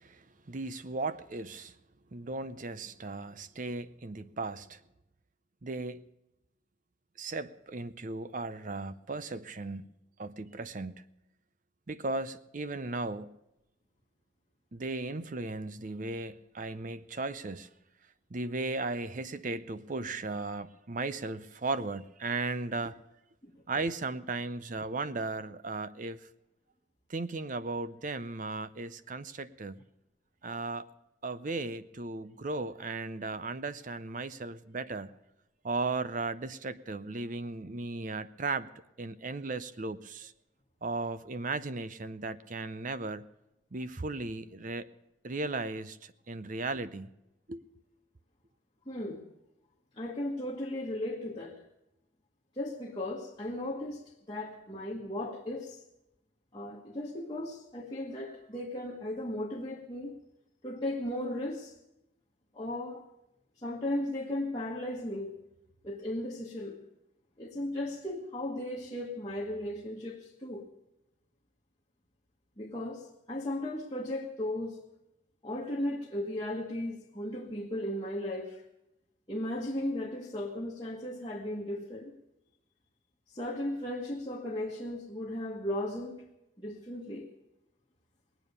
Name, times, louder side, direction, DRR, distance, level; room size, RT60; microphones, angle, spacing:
voice 1, 0.0-1.7 2.1-4.8 5.6-6.0 7.2-9.9 10.2-11.0 11.9-13.4 14.7-17.7 18.3-23.0 23.7-26.3 27.1-29.8 30.4-30.9 31.2-35.1 35.6-38.7 39.0-40.3 40.8-43.3 43.7-44.9 45.2-47.1 47.5-47.6, right 3 dB, 40° right, 0.6 m, -36 dB
voice 2, 48.9-49.2 50.0-51.6 52.5-55.8 56.5-60.2 60.6-61.7 62.5-63.0 63.6-65.4 65.8-66.8 67.4-70.7 72.6-74.8 75.4-78.6 79.3-82.1 83.3-86.2 86.6-87.3, left 1 dB, 20° left, 1.4 m, -36 dB
20.0 x 9.1 x 6.7 m
head